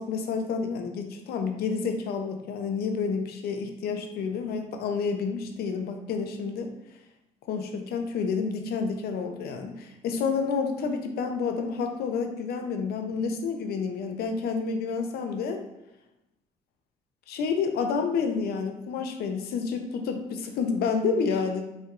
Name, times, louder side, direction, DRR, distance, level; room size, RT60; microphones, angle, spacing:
voice 1, 0.0-6.7 7.5-15.6 17.3-21.6, left 5 dB, 70° left, 5 dB, 0.6 m, -29 dB
5.4 x 3.4 x 2.5 m, 0.92 s
cardioid pair, 110°, 17 cm